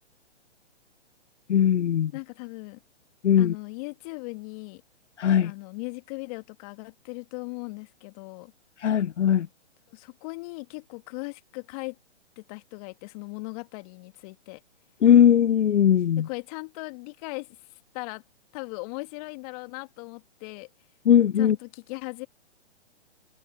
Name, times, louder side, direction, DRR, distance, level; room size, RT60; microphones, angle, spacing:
voice 1, 1.5-2.1 3.2-3.5 5.2-5.5 8.8-9.5 15.0-16.3 21.1-21.6, left 9 dB, 75° left, 0.6 m, -19 dB
voice 2, 2.1-2.8 3.4-4.8 5.4-8.5 9.9-12.0 12.4-14.6 16.2-17.5 17.9-18.2 18.5-20.7 21.4-22.3, left 29 dB, 30° left, 2.2 m, -38 dB
hypercardioid pair, 135°, 35 cm